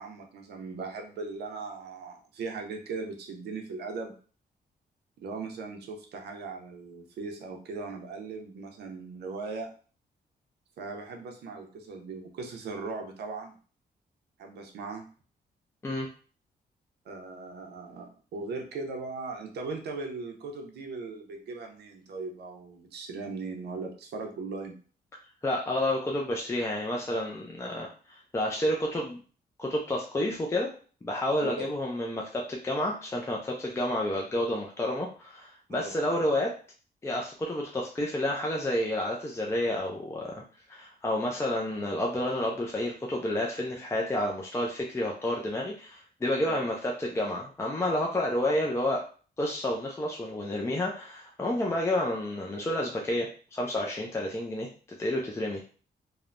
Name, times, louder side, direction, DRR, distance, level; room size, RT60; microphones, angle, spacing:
voice 1, 0.0-4.1 5.2-9.7 10.8-13.5 14.4-15.0 17.1-24.8 31.4-31.6 35.7-36.0 46.4-46.7 51.7-51.8, right 4 dB, 90° right, 3 dB, 0.6 m, -38 dB
voice 2, 25.4-29.2 29.6-30.7 31.0-36.5 37.0-40.4 40.7-49.0 49.4-54.7 55.0-55.6, left 1 dB, 15° left, -1 dB, 0.4 m, -30 dB
3.1 x 2.1 x 2.4 m, 0.40 s
cardioid pair, 125°, 17 cm